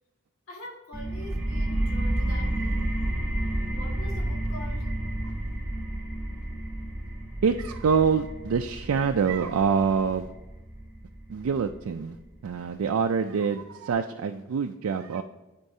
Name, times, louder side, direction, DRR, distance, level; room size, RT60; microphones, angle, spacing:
voice 1, 0.5-2.9 3.7-4.9, equal, 70° left, -2 dB, 2.0 m, -44 dB
sound 1, 0.9-12.3, right 1 dB, 10° right, 1.3 m, -31 dB
voice 2, 7.4-10.3 11.3-12.2 12.4-15.2, right 6 dB, 80° right, 6 dB, 0.4 m, -25 dB
12.5 x 4.5 x 2.7 m, 1.1 s
head